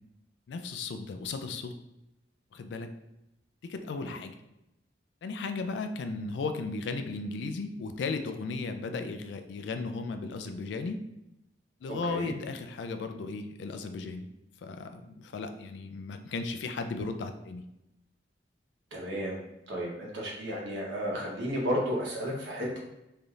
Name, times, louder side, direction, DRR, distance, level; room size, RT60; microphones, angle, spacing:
voice 1, 0.5-1.8 2.5-2.9 3.6-4.3 5.2-11.0 11.8-14.3 14.6-17.6, left 3 dB, 70° left, 7 dB, 0.3 m, -35 dB
voice 2, 18.9-19.4 19.7-22.8, equal, 80° right, -3 dB, 0.9 m, -33 dB
3.3 x 2.6 x 2.3 m, 0.87 s
head